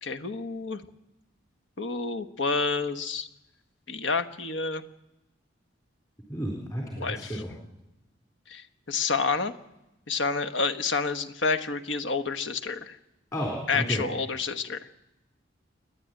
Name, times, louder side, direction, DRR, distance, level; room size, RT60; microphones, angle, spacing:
voice 1, 0.0-0.8 1.8-3.3 3.9-4.8 7.0-7.4 8.5-9.5 10.1-13.0 13.7-14.8, left 4 dB, 80° left, 8 dB, 1.3 m, -29 dB
voice 2, 6.3-7.5 13.3-14.0, equal, 20° left, -1 dB, 4.0 m, -32 dB
29.0 x 11.0 x 9.2 m, 0.93 s
head